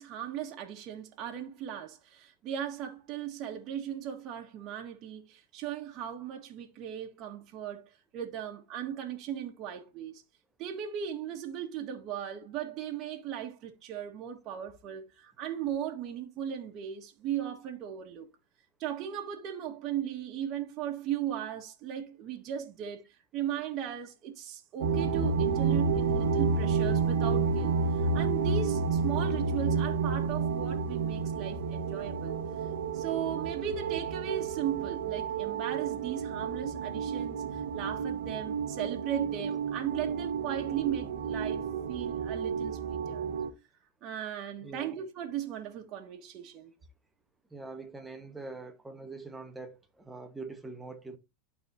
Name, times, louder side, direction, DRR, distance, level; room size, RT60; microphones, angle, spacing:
voice 1, 0.0-10.2 10.6-18.3 18.8-32.4 32.9-43.2 44.0-46.7, right 9 dB, 45° right, 1.7 m, -37 dB
sound 1, 24.8-43.5, right 5 dB, 75° right, 1.3 m, -30 dB
voice 2, 44.6-45.0 47.5-51.2, right 3 dB, 10° right, 1.4 m, -43 dB
12.0 x 4.3 x 2.8 m
hypercardioid pair, 105°, 0 cm